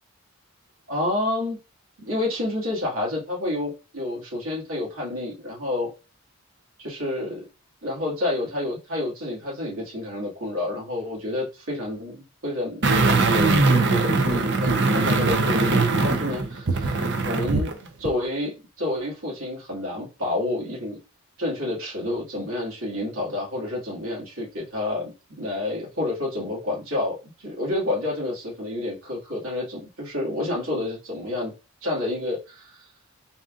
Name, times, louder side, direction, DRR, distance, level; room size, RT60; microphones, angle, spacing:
voice 1, 0.9-1.6 2.0-5.9 6.8-7.4 7.8-21.0 21.4-31.5 31.8-32.8, left 1 dB, 75° right, 2.2 m, -29 dB
sound 1, 12.8-17.7 18.1-18.2, right 3 dB, 55° right, 0.7 m, -21 dB
4.1 x 2.6 x 3.6 m
head